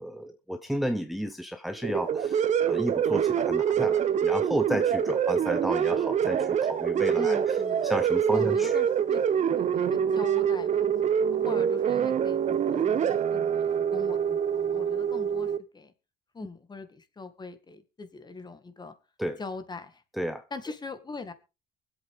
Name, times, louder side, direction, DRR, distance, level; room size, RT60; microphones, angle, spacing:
voice 1, 0.0-7.6 7.8-8.7 19.2-19.4 20.2-20.4, equal, ahead, 1.0 m, -32 dB
sound 1, 1.8-15.6, right 8 dB, 45° right, 0.9 m, -25 dB
voice 2, 7.1-7.9 8.3-9.2 9.6-15.9 16.3-19.0 19.4-20.0 20.5-21.3, left 3 dB, 25° left, 2.1 m, -42 dB
23.5 x 8.2 x 3.7 m
cardioid pair, 110°, 17 cm